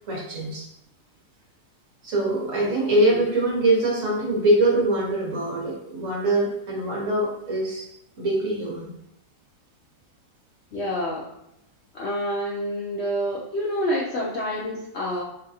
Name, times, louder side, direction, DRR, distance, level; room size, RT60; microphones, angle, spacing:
voice 1, 0.1-0.6 2.0-7.9 8.2-8.9, right 1 dB, 55° right, -3 dB, 1.4 m, -23 dB
voice 2, 10.7-11.3 11.9-15.2, equal, 60° left, -4 dB, 0.7 m, -28 dB
4.0 x 3.7 x 2.7 m, 0.83 s
omnidirectional pair, 1.8 m